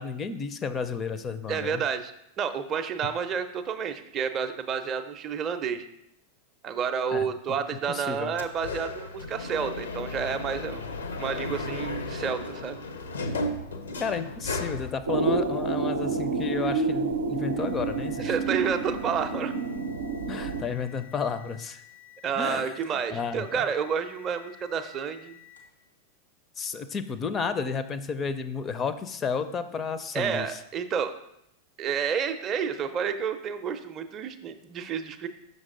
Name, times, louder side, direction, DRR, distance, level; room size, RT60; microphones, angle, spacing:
voice 1, 0.0-1.8 7.1-7.3 7.9-8.3 12.1-12.2 14.0-18.3 20.3-21.8 22.4-22.8 23.1-23.6 26.6-30.6, left 5 dB, 25° left, 12 dB, 0.4 m, -32 dB
voice 2, 1.5-2.1 2.4-5.8 6.6-10.9 11.2-12.8 18.2-19.5 22.2-25.4 30.1-31.1 31.8-35.3, right 7 dB, 30° right, 7 dB, 0.5 m, -30 dB
sound 1, 8.4-14.9, left 2 dB, 70° left, 0.6 m, -34 dB
sound 2, 15.1-20.6, right 4 dB, 75° right, 0.6 m, -28 dB
sound 3, 17.3-25.9, left 12 dB, 90° left, 1.2 m, -53 dB
6.2 x 5.3 x 3.7 m, 0.78 s
figure-of-eight pair, 90°, 0 cm